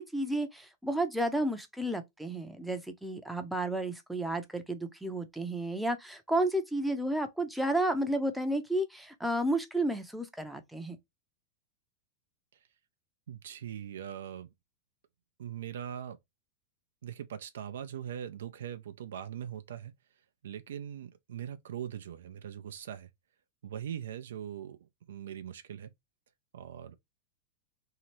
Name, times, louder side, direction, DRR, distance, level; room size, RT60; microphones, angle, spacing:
voice 1, 0.0-11.0, right 1 dB, ahead, 0.6 m, -32 dB
voice 2, 13.3-14.5 15.4-16.2 17.0-19.9 20.4-23.1 23.6-25.9 26.5-26.9, right 9 dB, 60° right, 0.3 m, -41 dB
2.8 x 2.8 x 3.0 m
figure-of-eight pair, 90°, 0 cm